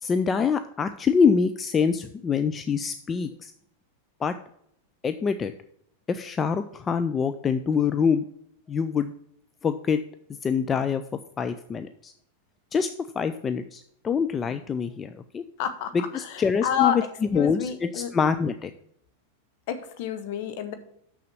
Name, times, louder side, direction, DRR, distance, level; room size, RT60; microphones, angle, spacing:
voice 1, 0.0-3.5 4.2-4.3 5.0-5.5 6.1-8.2 8.7-9.1 9.6-10.0 10.4-11.0 11.4-12.1 12.7-15.4 16.1-17.0 17.3-18.7, left 6 dB, 20° left, 9 dB, 0.4 m, -25 dB
voice 2, 15.6-18.1 19.7-20.7, left 9 dB, 45° left, 8 dB, 1.1 m, -29 dB
6.7 x 6.3 x 7.0 m, 0.71 s
figure-of-eight pair, 90°, 0 cm